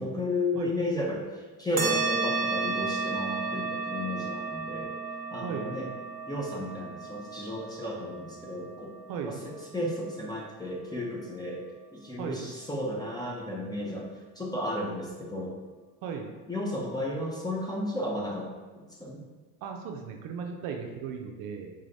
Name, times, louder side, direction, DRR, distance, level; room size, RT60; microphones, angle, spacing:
voice 1, 0.0-4.9 5.3-5.9 6.3-8.9 9.3-11.6 11.9-14.1 14.4-15.6 16.5-19.2, left 1 dB, 10° left, -2 dB, 0.6 m, -33 dB
sound 1, 1.8-10.7, right 4 dB, 20° right, 0.8 m, -34 dB
voice 2, 16.0-16.3 19.6-21.7, right 6 dB, 60° right, 3 dB, 0.5 m, -36 dB
3.9 x 3.1 x 2.6 m, 1.3 s
supercardioid pair, 110°, 39 cm